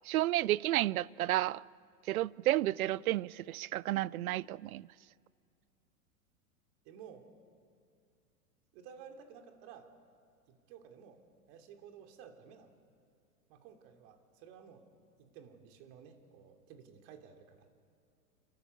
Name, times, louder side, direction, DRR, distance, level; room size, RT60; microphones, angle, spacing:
voice 1, 0.1-1.6 2.1-4.9, right 15 dB, 70° right, 0.6 m, -31 dB
voice 2, 6.8-7.3 8.7-9.9 10.5-11.2 11.5-12.7 13.5-14.9 15.2-17.7, right 7 dB, 50° right, 2.9 m, -54 dB
29.0 x 12.5 x 8.3 m
hypercardioid pair, 100°, 44 cm